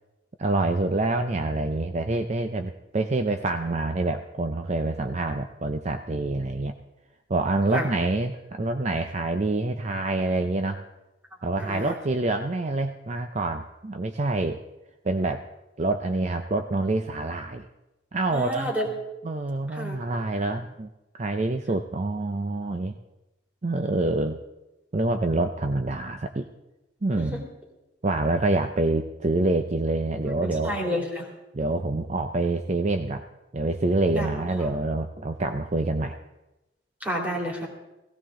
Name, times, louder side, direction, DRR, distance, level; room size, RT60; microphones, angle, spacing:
voice 1, 0.4-6.7 7.3-10.8 11.4-14.6 15.0-15.4 15.8-17.7 18.1-18.7 19.2-20.9 21.2-22.9 23.6-24.4 24.9-26.5 27.0-27.4 28.0-30.8 31.5-33.2 33.5-36.2, right 2 dB, 40° right, 7 dB, 0.6 m, -26 dB
voice 2, 11.6-11.9 18.3-18.9 19.7-20.0 27.2-27.4 30.3-31.3 34.1-34.3 34.6-34.7 37.0-37.7, equal, 10° right, -1 dB, 2.8 m, -30 dB
17.5 x 15.5 x 3.7 m, 0.99 s
head